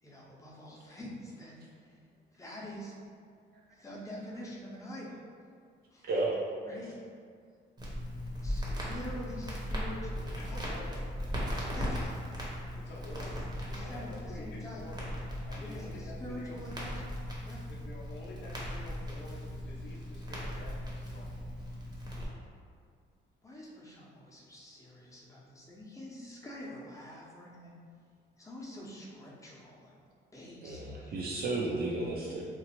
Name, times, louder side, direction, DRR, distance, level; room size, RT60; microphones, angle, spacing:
voice 1, 0.0-2.0 2.3-2.9 3.7-5.2 5.9-6.1 6.6-6.9 8.4-10.6 11.7-12.1 13.7-14.8 15.6-17.2 17.5-17.6 23.4-27.7 28.4-30.1 30.3-31.2, left 1 dB, 15° left, -5 dB, 0.6 m, -46 dB
voice 2, 6.0-6.4 30.6-32.4, right 2 dB, 50° right, -3 dB, 0.4 m, -32 dB
Crackle, 7.8-22.3, equal, 20° right, 0.7 m, -38 dB
voice 3, 10.3-11.1 12.8-13.5 13.8-15.1 15.4-16.6 17.7-21.4, left 2 dB, 60° left, -5 dB, 0.5 m, -49 dB
3.0 x 2.0 x 2.8 m, 2.1 s
cardioid pair, 90°, 20 cm